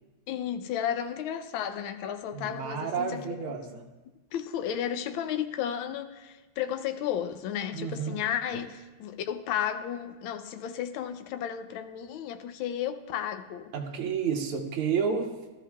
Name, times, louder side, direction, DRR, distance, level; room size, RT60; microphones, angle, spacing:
voice 1, 0.3-3.5 4.3-13.7, left 9 dB, 75° left, 1.4 m, -33 dB
voice 2, 2.3-3.9 7.7-8.2 13.7-15.3, right 6 dB, 80° right, 1.9 m, -30 dB
17.5 x 13.0 x 2.3 m
omnidirectional pair, 2.4 m